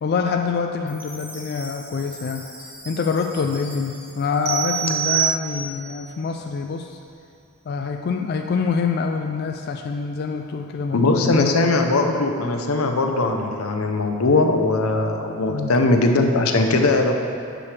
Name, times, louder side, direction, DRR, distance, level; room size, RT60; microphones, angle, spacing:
voice 1, 0.0-2.5 2.8-7.0 7.7-11.5 15.5-15.7, left 5 dB, 50° left, 3 dB, 0.3 m, -25 dB
Chime, 0.9-5.2, right 1 dB, 5° right, 1.1 m, -42 dB
sound 1, 4.5-6.0, right 9 dB, 50° right, 0.7 m, -24 dB
voice 2, 10.9-17.1, left 2 dB, 85° left, 4 dB, 0.7 m, -20 dB
8.8 x 6.3 x 3.3 m, 2.4 s
head